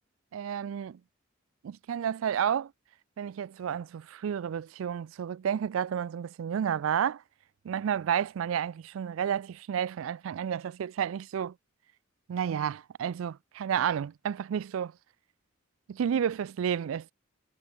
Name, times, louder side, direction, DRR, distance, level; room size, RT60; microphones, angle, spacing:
voice 1, 0.3-1.0 1.6-2.7 3.2-7.2 7.6-11.5 12.3-14.9 15.9-17.1, right 8 dB, 80° right, 0.3 m, -31 dB
head